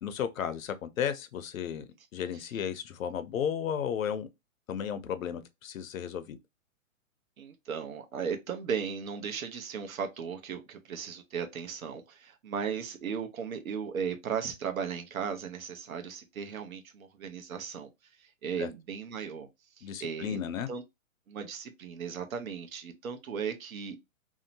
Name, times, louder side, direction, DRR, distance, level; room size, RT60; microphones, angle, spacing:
voice 1, 0.0-1.9 2.1-4.3 4.7-6.4 18.6-18.7 19.8-20.7, left 8 dB, 80° left, 0.6 m, -34 dB
voice 2, 7.4-17.9 18.2-19.5 19.8-20.4 20.7-20.8 21.3-24.0, right 7 dB, 85° right, 0.8 m, -36 dB
2.7 x 2.1 x 2.6 m
hypercardioid pair, 175°, 40 cm